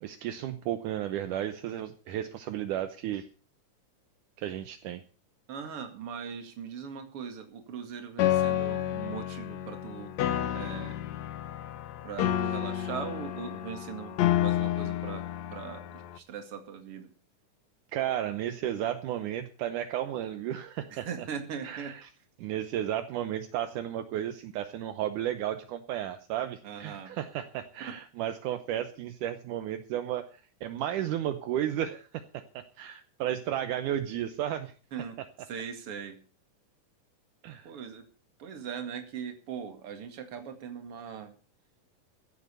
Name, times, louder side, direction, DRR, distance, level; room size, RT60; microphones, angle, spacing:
voice 1, 0.0-3.2 4.4-5.0 17.9-21.1 21.6-22.0 22.4-30.3 30.6-32.2 32.5-34.7 37.4-37.7, right 11 dB, 75° right, 9 dB, 2.3 m, -33 dB
voice 2, 5.5-10.1 10.5-11.0 12.0-15.2 15.5-17.1 20.9-22.0 26.6-27.1 27.8-28.0 34.9-35.2 35.5-36.2 37.6-38.0 38.4-41.3, right 7 dB, 45° right, 6 dB, 2.7 m, -40 dB
Piano, 8.2-16.2, left 12 dB, 70° left, 1.9 m, -30 dB
15.5 x 7.9 x 6.8 m, 0.38 s
omnidirectional pair, 3.8 m